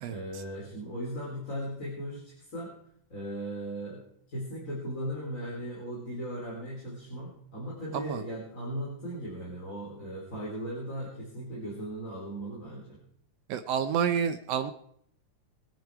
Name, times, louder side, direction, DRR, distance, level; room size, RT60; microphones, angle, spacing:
voice 1, 0.1-2.7 3.1-4.0 4.3-13.0, equal, 25° left, -4 dB, 4.0 m, -37 dB
voice 2, 13.5-14.7, right 8 dB, 80° right, 9 dB, 1.4 m, -29 dB
23.0 x 9.1 x 4.8 m, 0.68 s
omnidirectional pair, 3.6 m